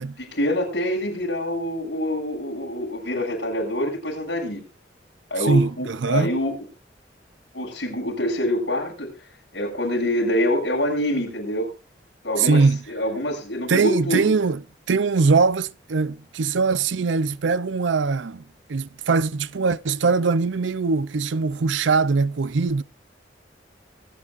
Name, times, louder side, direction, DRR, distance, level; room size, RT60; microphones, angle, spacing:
voice 1, 0.2-4.6 5.3-6.5 7.5-9.1 9.5-11.7 12.2-14.4, left 1 dB, 65° left, 7.3 m, -25 dB
voice 2, 5.4-6.3 12.4-12.8 13.7-14.6 14.9-18.4 18.7-22.8, right 4 dB, 85° right, 0.5 m, -21 dB
25.0 x 10.0 x 2.5 m
head